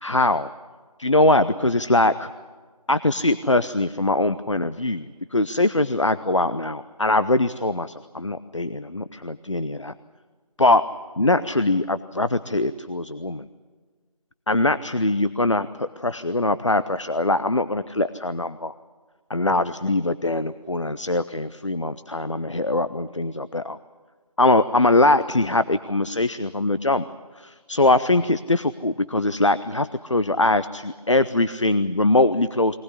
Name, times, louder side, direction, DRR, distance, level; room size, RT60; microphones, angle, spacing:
voice 1, 0.0-0.5 1.0-2.3 2.9-9.9 10.6-10.8 11.2-13.5 14.5-18.7 19.3-23.8 24.4-27.0 27.4-32.8, left 2 dB, 50° left, 13 dB, 0.7 m, -22 dB
23.0 x 18.5 x 9.9 m, 1.5 s
figure-of-eight pair, 170°, 19 cm